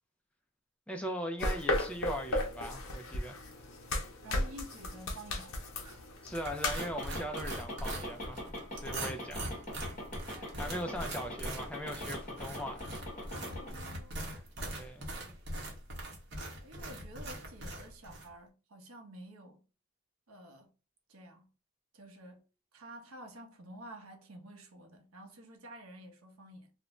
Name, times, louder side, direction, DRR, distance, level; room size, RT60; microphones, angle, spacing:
voice 1, 0.9-3.4 6.2-8.5 8.7-9.5 10.3-12.9 14.8-15.1, equal, 5° left, 0.4 m, -40 dB
sound 1, 1.4-6.9, left 2 dB, 75° left, 0.6 m, -35 dB
voice 2, 4.2-6.3 10.3-10.9 13.3-14.3 16.6-19.6 20.3-20.7 21.1-21.5 21.9-22.4 22.7-26.7, right 1 dB, 85° right, 0.7 m, -51 dB
sound 2, 6.4-18.3, right 1 dB, 55° right, 0.8 m, -42 dB
sound 3, 6.6-13.7, left 1 dB, 35° left, 1.0 m, -43 dB
2.5 x 2.1 x 2.9 m
head